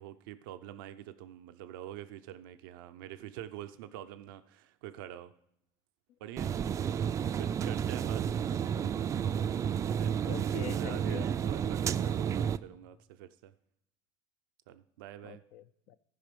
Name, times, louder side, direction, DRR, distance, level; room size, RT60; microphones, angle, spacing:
voice 1, 0.0-5.3 6.2-6.6 7.3-8.2 10.0-13.5 14.7-15.4, right 12 dB, 90° right, 10 dB, 0.5 m, -46 dB
sound 1, 6.4-12.6, right 8 dB, 30° right, 0.3 m, -31 dB
voice 2, 8.5-9.0 10.2-11.3 15.2-16.0, left 11 dB, 65° left, 13 dB, 0.6 m, -44 dB
15.0 x 5.1 x 5.2 m, 0.73 s
supercardioid pair, 120°, 11 cm